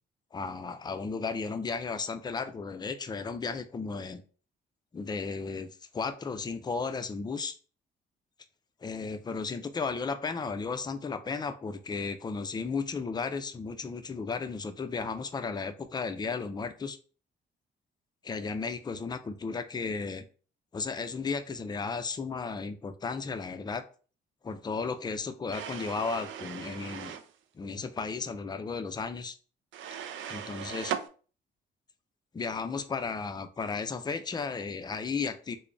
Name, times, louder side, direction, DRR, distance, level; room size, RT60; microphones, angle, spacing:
voice 1, 0.3-4.2 4.9-7.6 8.8-17.0 18.2-20.3 20.7-23.8 24.4-27.2 27.5-29.4 30.3-30.9 32.3-35.6, left 4 dB, 20° left, 9 dB, 0.4 m, -34 dB
sound 1, 25.5-27.3 29.7-31.1, right 9 dB, 75° right, 0.4 m, -38 dB
3.4 x 2.1 x 3.8 m, 0.39 s
cardioid pair, 90°, 20 cm